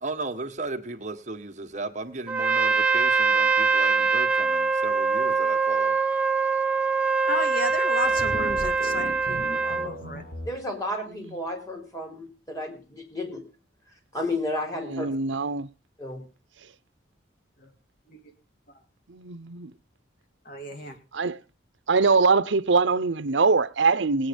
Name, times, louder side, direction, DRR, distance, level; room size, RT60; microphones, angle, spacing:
voice 1, 0.0-5.9, right 2 dB, 40° right, 1.5 m, -35 dB
Trumpet, 2.3-9.9, right 4 dB, 5° right, 0.7 m, -23 dB
voice 2, 7.3-10.2 17.6-17.7 18.1-18.3 20.5-21.0, left 1 dB, 50° left, 2.3 m, -33 dB
sound 1, 8.0-10.5, equal, 75° left, 6.6 m, -37 dB
voice 3, 10.5-13.4 14.1-15.1 16.0-16.2, left 1 dB, 20° left, 3.8 m, -32 dB
voice 4, 14.9-15.7 19.1-19.7 21.1-21.4 21.9-24.3, right 4 dB, 85° right, 0.7 m, -22 dB
18.5 x 9.0 x 5.3 m
head